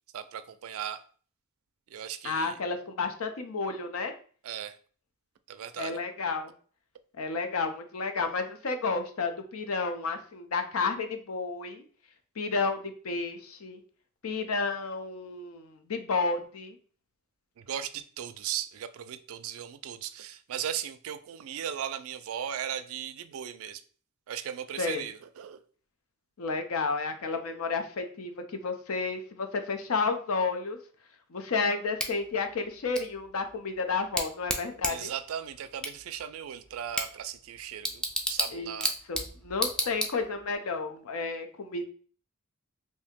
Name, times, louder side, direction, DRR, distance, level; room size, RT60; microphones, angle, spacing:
voice 1, 0.1-1.0 1.9-2.5 4.4-4.8 5.5-6.0 17.6-23.8 24.3-25.6 34.9-38.0 38.3-38.9, right 9 dB, 70° right, 12 dB, 0.3 m, -37 dB
voice 2, 2.2-4.1 5.8-6.5 7.2-11.8 12.4-13.8 14.2-16.8 24.8-25.1 26.4-30.8 31.3-35.1 38.5-38.8 39.1-41.8, left 4 dB, 75° left, 7 dB, 0.5 m, -31 dB
Bicycle / Tick, 32.0-40.6, equal, 5° left, 0.3 m, -35 dB
2.7 x 2.7 x 3.5 m, 0.44 s
head